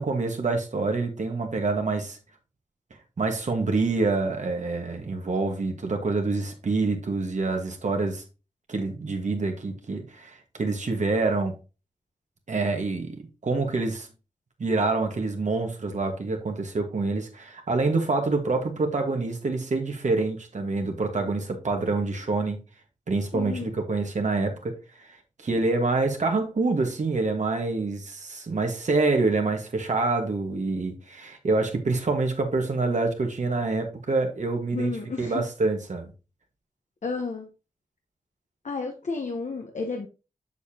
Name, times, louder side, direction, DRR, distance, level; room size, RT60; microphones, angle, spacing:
voice 1, 0.0-2.2 3.2-8.2 8.7-11.5 12.5-14.1 14.6-22.6 23.1-24.7 25.4-36.1, right 3 dB, 70° right, 1.6 m, -26 dB
voice 2, 23.3-23.7 34.7-35.4 37.0-37.5 38.6-40.1, left 4 dB, 65° left, 1.1 m, -31 dB
7.0 x 6.7 x 2.8 m
cardioid pair, 45°, 13 cm